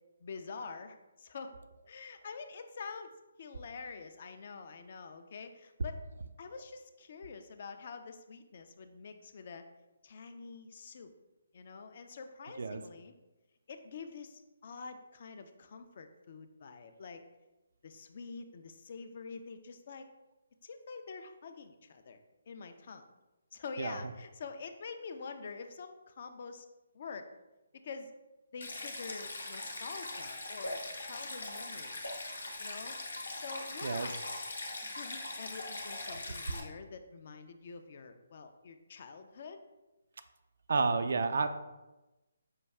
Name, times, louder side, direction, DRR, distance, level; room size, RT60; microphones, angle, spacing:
voice 1, 0.2-1.5 1.9-3.1 3.4-6.0 6.4-9.6 10.0-11.1 11.5-13.1 13.7-17.2 17.8-20.1 20.6-22.2 22.5-23.1 23.5-26.7 26.9-27.3 27.8-28.1 28.5-32.0 32.6-33.0 33.3-34.2 34.9-39.6, left 5 dB, 50° left, 7 dB, 0.3 m, -46 dB
Stream, 28.6-36.6, left 2 dB, 75° left, 0.8 m, -41 dB
voice 2, 40.7-41.5, right 4 dB, 60° right, 9 dB, 0.3 m, -30 dB
5.3 x 2.2 x 3.4 m, 1.1 s
figure-of-eight pair, 140°, 0 cm